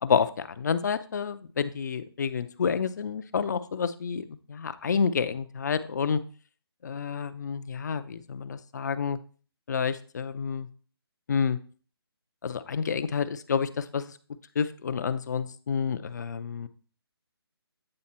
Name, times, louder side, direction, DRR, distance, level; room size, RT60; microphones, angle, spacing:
voice 1, 0.0-6.2 6.8-9.2 9.7-10.7 11.3-11.6 12.4-14.1 14.6-16.7, left 6 dB, 45° left, 12 dB, 0.5 m, -29 dB
8.7 x 3.5 x 4.2 m, 0.41 s
figure-of-eight pair, 160°, 14 cm